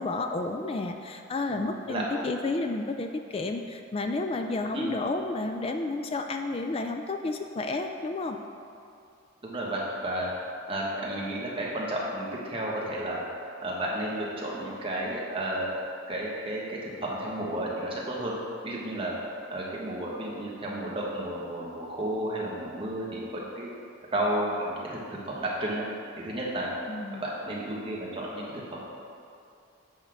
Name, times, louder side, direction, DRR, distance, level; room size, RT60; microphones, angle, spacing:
voice 1, 0.0-8.4 26.9-27.2, left 2 dB, 30° left, 5 dB, 0.3 m, -31 dB
voice 2, 1.5-2.3 4.7-4.9 9.4-10.3 10.7-13.2 13.6-18.3 18.6-19.1 19.5-23.7 24.1-25.8 26.2-26.7 27.2-28.4 28.7-28.8, right 1 dB, 25° right, -4 dB, 1.2 m, -32 dB
7.9 x 3.6 x 6.0 m, 2.5 s
head